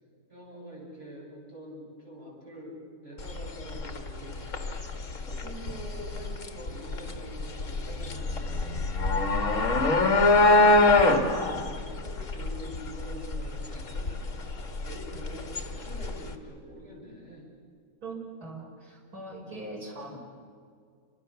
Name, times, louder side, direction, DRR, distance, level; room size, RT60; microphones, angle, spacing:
voice 1, 0.3-4.5 5.2-9.7 10.3-14.2 14.8-17.5 19.8-20.2, right 1 dB, 50° right, -4 dB, 8.3 m, -45 dB
sound 1, 3.2-16.3, left 2 dB, 55° left, 2.2 m, -25 dB
voice 2, 10.2-10.7 18.0-20.2, right 2 dB, 85° right, -2 dB, 5.6 m, -41 dB
29.5 x 25.5 x 7.0 m, 2.1 s
omnidirectional pair, 1.6 m